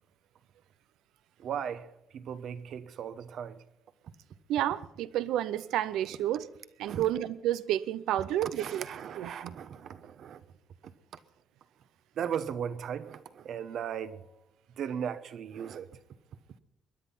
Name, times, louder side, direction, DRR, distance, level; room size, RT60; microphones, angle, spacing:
voice 1, 1.4-3.6 6.9-7.1 8.4-10.4 10.8-10.9 12.2-14.2 14.8-15.9, right 8 dB, 70° right, 1.0 m, -37 dB
voice 2, 4.5-6.5 6.8-8.8 9.2-9.6, right 12 dB, 90° right, 0.6 m, -30 dB
22.5 x 10.5 x 5.6 m
cardioid pair, 90°, 0 cm